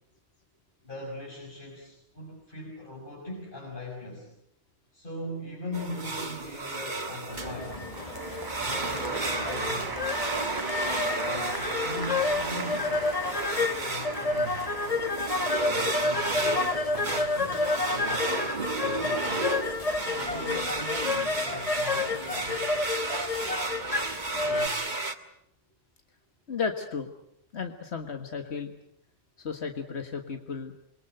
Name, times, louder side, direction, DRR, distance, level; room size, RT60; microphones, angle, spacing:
voice 1, 0.8-4.3 4.9-7.8 8.6-10.0 11.2-14.6 15.7-18.4 18.8-19.6 20.0-22.8 24.3-24.9, left 1 dB, 55° left, -3 dB, 6.2 m, -40 dB
sound 1, 5.7-25.2, right 3 dB, 45° right, 1.7 m, -33 dB
sound 2, 7.3-24.7, left 3 dB, 35° left, 1.2 m, -30 dB
Applause, 7.6-16.7, right 2 dB, 20° right, 1.0 m, -39 dB
voice 2, 26.5-27.1 27.5-28.8 29.4-30.7, left 5 dB, 85° left, 6 dB, 1.9 m, -34 dB
27.5 x 22.5 x 7.9 m, 0.73 s
omnidirectional pair, 1.1 m